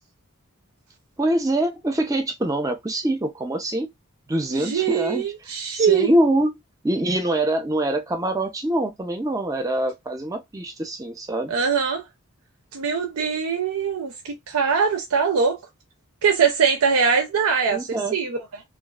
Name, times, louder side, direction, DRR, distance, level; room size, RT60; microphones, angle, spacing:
voice 1, 1.2-3.9 4.3-5.2 5.7-6.5 6.8-11.5 17.7-18.1, right 1 dB, 15° right, 0.4 m, -24 dB
voice 2, 4.5-6.1 11.5-12.1 12.7-15.6 16.2-18.6, right 6 dB, 85° right, 0.5 m, -22 dB
2.4 x 2.3 x 2.3 m
head